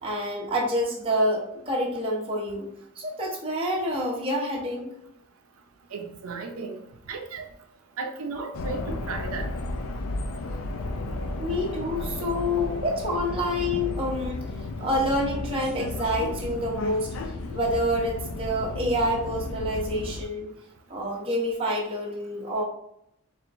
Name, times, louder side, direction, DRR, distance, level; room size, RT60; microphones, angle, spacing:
voice 1, 0.0-2.7 3.0-4.9 11.4-14.4 14.8-17.1 17.5-20.5 20.9-22.6, equal, 25° right, -3 dB, 0.9 m, -27 dB
voice 2, 5.9-6.8 7.1-7.5 8.0-9.5, right 4 dB, 85° right, 3 dB, 0.6 m, -34 dB
sound 1, 8.5-20.2, left 2 dB, 85° left, 0.5 m, -33 dB
4.4 x 3.4 x 2.5 m, 0.76 s
head